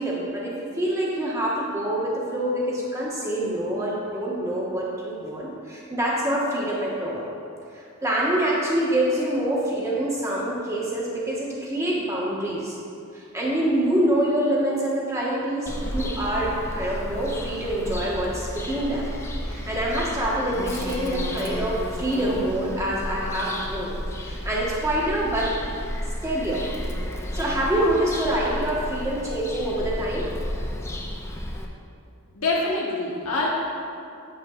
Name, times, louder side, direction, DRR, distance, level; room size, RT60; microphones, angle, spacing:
voice 1, 0.0-7.2 7.7-12.8 13.1-19.1 19.4-23.9 24.2-25.5 26.2-26.6 27.1-30.3, right 1 dB, 15° right, -6 dB, 1.2 m, -26 dB
Bird vocalization bird call bird song, 15.7-31.7, left 1 dB, 10° left, 0.4 m, -32 dB
voice 2, 32.3-33.5, left 2 dB, 75° left, -3 dB, 1.1 m, -25 dB
8.5 x 7.4 x 2.4 m, 2.5 s
head